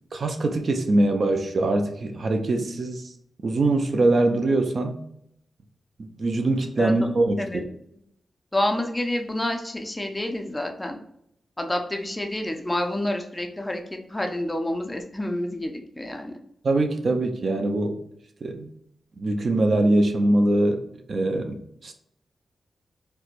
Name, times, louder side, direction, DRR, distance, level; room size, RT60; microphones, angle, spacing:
voice 1, 0.1-3.0 3.4-5.0 6.0-7.6 16.6-18.0 18.4-18.7 19.2-20.8 21.1-21.9, right 2 dB, 50° right, 5 dB, 0.4 m, -23 dB
voice 2, 8.5-11.0 11.6-16.4, left 1 dB, 10° left, 4 dB, 0.4 m, -28 dB
4.3 x 2.1 x 2.4 m, 0.74 s
wide cardioid pair, 115°, 0 cm